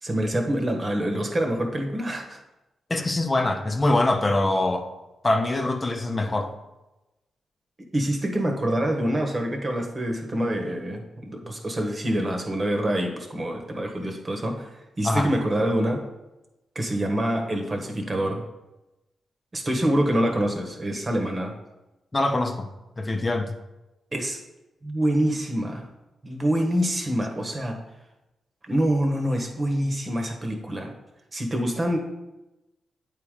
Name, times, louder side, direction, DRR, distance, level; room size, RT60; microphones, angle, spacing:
voice 1, 0.0-2.4 7.9-16.0 16.7-18.4 19.5-21.5 24.1-24.4 24.8-25.9 26.2-27.8 28.6-30.9 31.3-32.0, right 1 dB, 35° right, 1.3 m, -26 dB
voice 2, 2.9-4.9 5.2-6.5 15.0-15.3 22.1-22.7 23.0-23.5, left 2 dB, 30° left, 0.7 m, -23 dB
8.3 x 3.8 x 4.9 m
cardioid pair, 60°, 0 cm